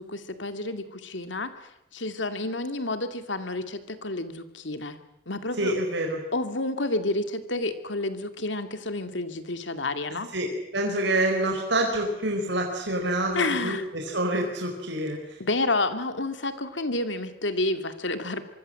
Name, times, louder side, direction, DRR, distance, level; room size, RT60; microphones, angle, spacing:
voice 1, 0.0-5.0 5.3-5.7 6.3-10.3 13.3-13.9 15.4-18.4, left 2 dB, 80° left, 8 dB, 2.5 m, -30 dB
voice 2, 5.6-6.2 10.3-15.4, right 1 dB, 70° right, 2 dB, 4.6 m, -27 dB
25.5 x 23.5 x 7.8 m, 0.83 s
head